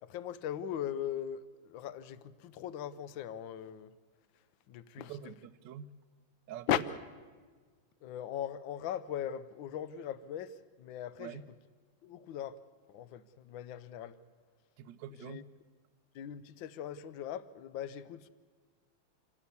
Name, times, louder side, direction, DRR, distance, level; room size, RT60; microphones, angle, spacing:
voice 1, 0.0-3.9 4.7-5.1 6.7-6.8 8.0-11.4 12.0-12.6 12.9-14.2 15.2-15.4 16.1-18.3, left 10 dB, 70° left, 1.4 m, -39 dB
voice 2, 5.0-5.9 6.5-6.8 11.2-11.4 14.8-15.6, right 9 dB, 65° right, 1.3 m, -45 dB
27.0 x 13.0 x 8.3 m
omnidirectional pair, 2.4 m